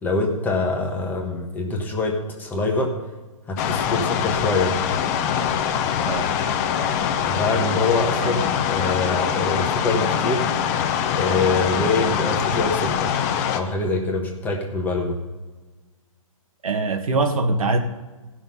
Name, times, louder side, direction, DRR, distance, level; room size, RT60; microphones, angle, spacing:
voice 1, 0.0-2.9 3.5-4.7 7.3-10.4 11.1-13.1 13.5-15.2, left 3 dB, 10° left, 1.2 m, -24 dB
sound 1, 3.6-13.6, left 8 dB, 25° left, 0.7 m, -23 dB
voice 2, 6.0-6.4 8.2-8.3 16.6-17.8, right 3 dB, 75° right, 1.6 m, -23 dB
15.5 x 6.1 x 5.5 m
hypercardioid pair, 150°, 18 cm